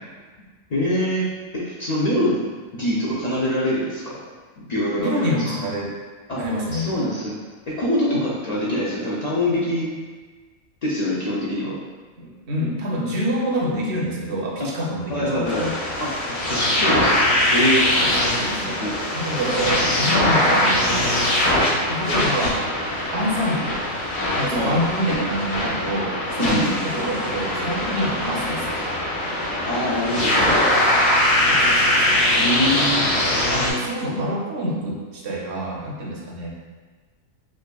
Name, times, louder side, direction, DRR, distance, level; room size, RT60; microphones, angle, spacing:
voice 1, 0.7-1.3 1.5-2.4 2.7-4.2 4.6-5.6 6.3-6.4 6.7-7.4 7.8-9.9 10.8-11.8 14.6-14.7 15.1-15.7 16.0-17.2 17.5-17.9 18.8-18.9 24.5-24.8 26.4-26.8 29.6-30.4 32.3-33.1, left 1 dB, 70° left, -7 dB, 0.4 m, -24 dB
voice 2, 5.0-5.9 6.3-6.9 8.1-8.3 12.2-15.7 18.0-18.8 19.1-21.2 21.9-22.6 23.1-23.7 24.4-28.9 31.4-32.2 33.5-36.5, equal, 60° right, -3 dB, 0.9 m, -26 dB
sound 1, 15.5-33.7, left 1 dB, 90° left, 1.4 m, -21 dB
4.9 x 2.4 x 2.2 m, 1.4 s
omnidirectional pair, 1.4 m